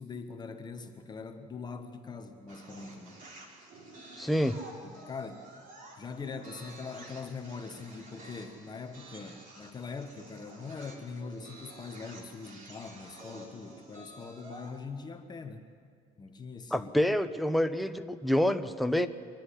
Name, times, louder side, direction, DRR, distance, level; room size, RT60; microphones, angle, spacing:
voice 1, 0.0-3.2 4.8-5.5 5.9-15.7 16.2-16.9, left 4 dB, 25° left, 6 dB, 1.2 m, -42 dB
sound 1, 2.5-14.8, right 1 dB, 55° right, 3.8 m, -50 dB
voice 2, 4.2-4.6 16.7-19.1, equal, ahead, 8 dB, 0.7 m, -27 dB
24.5 x 10.5 x 10.0 m, 2.1 s
cardioid pair, 120°, 16 cm